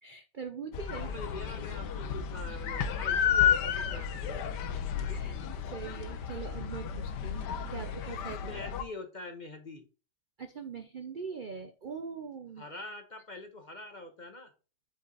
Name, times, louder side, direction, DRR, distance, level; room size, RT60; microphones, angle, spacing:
voice 1, 0.0-1.1 5.1-5.4 5.7-8.4 10.4-12.6, right 6 dB, 60° right, 7 dB, 0.5 m, -42 dB
sound 1, 0.7-8.8, left 8 dB, 80° left, 1.4 m, -32 dB
voice 2, 1.0-4.5 8.4-9.8 12.6-14.5, left 2 dB, 30° left, 5 dB, 1.0 m, -44 dB
7.7 x 5.1 x 4.0 m, 0.33 s
omnidirectional pair, 1.9 m